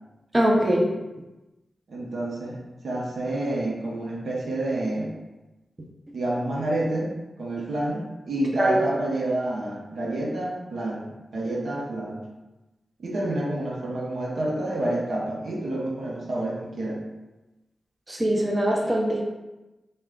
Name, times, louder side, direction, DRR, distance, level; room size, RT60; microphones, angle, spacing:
voice 1, 0.3-0.9 8.6-8.8 18.1-19.2, right 1 dB, 30° right, -1 dB, 0.6 m, -22 dB
voice 2, 1.9-5.1 6.1-12.2 13.0-17.0, right 1 dB, 75° right, -3 dB, 0.8 m, -29 dB
4.2 x 2.2 x 3.7 m, 1.1 s
cardioid pair, 55°, 0 cm